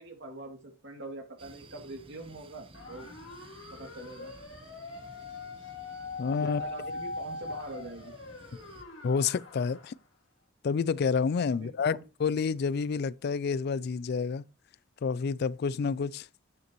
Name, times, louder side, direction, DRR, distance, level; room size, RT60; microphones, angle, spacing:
voice 1, 0.0-3.1 3.7-4.3 6.4-8.1 11.5-12.0, right 2 dB, 65° right, 2.6 m, -44 dB
sound 1, 1.4-8.8, right 2 dB, 30° right, 1.0 m, -54 dB
sound 2, 2.7-9.9, left 3 dB, 80° left, 2.0 m, -42 dB
voice 2, 6.2-6.6 9.0-9.9 10.6-14.4 15.0-16.3, left 5 dB, 55° left, 0.4 m, -29 dB
9.5 x 9.3 x 3.0 m
head